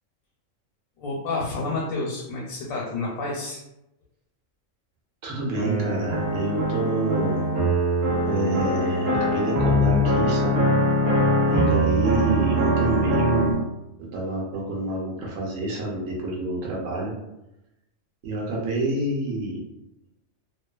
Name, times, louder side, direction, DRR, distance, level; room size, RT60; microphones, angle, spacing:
voice 1, 1.0-3.6, left 3 dB, 85° left, -3 dB, 1.0 m, -29 dB
voice 2, 5.2-7.5 8.2-10.7 11.5-13.7 14.1-17.1 18.2-19.6, right 1 dB, 80° right, -3 dB, 1.1 m, -28 dB
sound 1, 5.6-13.5, equal, 55° right, 1.0 m, -22 dB
2.5 x 2.3 x 2.2 m, 0.90 s
omnidirectional pair, 1.4 m